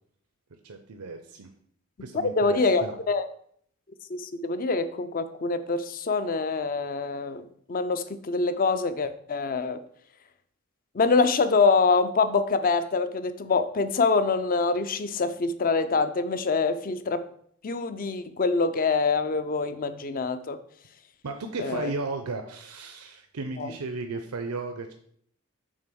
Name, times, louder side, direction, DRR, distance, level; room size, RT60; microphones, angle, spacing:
voice 1, 0.6-1.5 2.0-3.0 21.2-24.9, right 3 dB, 90° right, 6 dB, 0.6 m, -35 dB
voice 2, 2.2-3.2 4.1-9.8 10.9-17.3 17.6-20.6 21.6-21.9 23.6-23.7, left 4 dB, 40° left, 12 dB, 0.5 m, -25 dB
6.4 x 3.8 x 6.2 m, 0.64 s
head